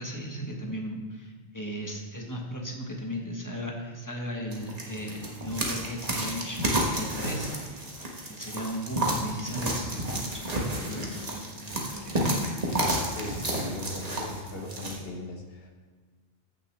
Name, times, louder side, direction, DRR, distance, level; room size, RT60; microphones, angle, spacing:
voice 1, 0.0-7.8 8.3-12.2, equal, 15° left, 0 dB, 1.3 m, -36 dB
sound 1, 4.5-15.0, right 1 dB, 35° right, 1.4 m, -31 dB
voice 2, 13.1-15.7, left 1 dB, 55° left, 2 dB, 1.4 m, -38 dB
14.5 x 6.4 x 3.3 m, 1.5 s
omnidirectional pair, 1.2 m